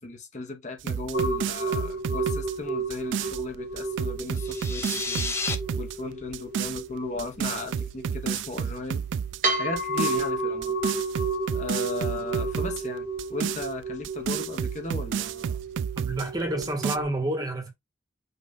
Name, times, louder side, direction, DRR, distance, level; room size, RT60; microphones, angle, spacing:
voice 1, 0.0-5.3 5.8-9.0 9.6-10.8 11.5-15.6, left 2 dB, 40° left, 0.9 m, -36 dB
sound 1, 0.8-3.4 3.8-6.0 6.3-6.8 7.2-9.4 9.8-10.3 10.6-12.8 13.2-16.3 16.6-17.0, right 7 dB, 85° right, 0.3 m, -31 dB
sound 2, 1.1-17.0, right 2 dB, 45° right, 1.5 m, -32 dB
sound 3, 4.3-5.6, left 4 dB, 15° left, 0.6 m, -31 dB
voice 2, 16.0-17.7, right 1 dB, 20° right, 1.0 m, -29 dB
5.4 x 2.4 x 3.9 m
head